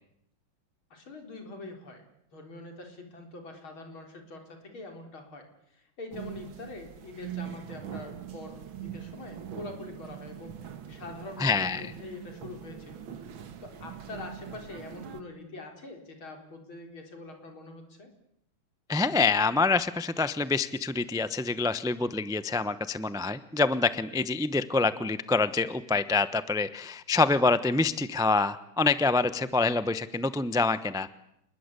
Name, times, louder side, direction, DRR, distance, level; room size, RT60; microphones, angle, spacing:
voice 1, 0.9-2.0 2.3-13.0 13.6-18.1, left 2 dB, 85° left, 3 dB, 5.0 m, -44 dB
sound 1, 6.1-15.2, right 9 dB, 75° right, 2.2 m, -42 dB
voice 2, 11.4-11.9 18.9-31.1, left 3 dB, 5° right, 13 dB, 0.3 m, -26 dB
28.0 x 21.0 x 8.4 m, 0.78 s
omnidirectional pair, 2.2 m